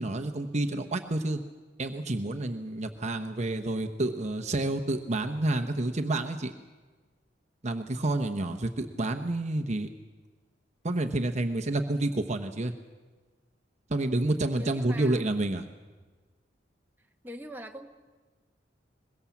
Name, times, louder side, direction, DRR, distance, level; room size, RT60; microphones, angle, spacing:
voice 1, 0.0-1.4 1.8-6.5 7.6-9.9 10.8-12.7 13.9-15.6, right 2 dB, 40° right, 5 dB, 1.0 m, -29 dB
voice 2, 14.6-15.3 17.2-17.9, equal, 10° right, 2 dB, 1.4 m, -42 dB
22.5 x 21.5 x 7.3 m, 1.4 s
head